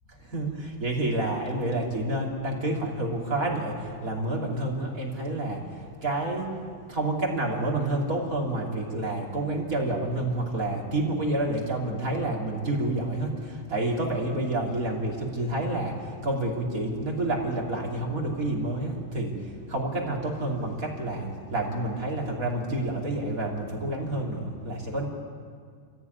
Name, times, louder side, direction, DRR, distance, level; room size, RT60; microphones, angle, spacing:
voice 1, 0.2-25.0, right 2 dB, 20° right, -2 dB, 2.8 m, -29 dB
28.0 x 14.5 x 9.4 m, 2.1 s
omnidirectional pair, 5.1 m